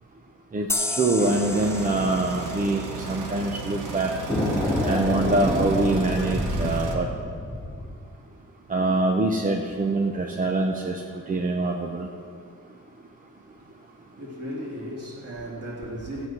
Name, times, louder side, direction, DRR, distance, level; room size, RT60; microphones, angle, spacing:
voice 1, 0.5-4.1 4.9-7.1 8.7-12.1, right 2 dB, 25° right, 0.7 m, -24 dB
sound 1, 0.7-4.0, left 2 dB, 10° left, 0.5 m, -33 dB
sound 2, 1.2-6.9, right 4 dB, 80° right, 1.5 m, -35 dB
sound 3, 4.3-8.0, left 1 dB, 10° right, 2.2 m, -27 dB
voice 2, 13.5-16.3, equal, 55° right, 3.2 m, -36 dB
14.5 x 8.0 x 6.0 m
wide cardioid pair, 150°, 31 cm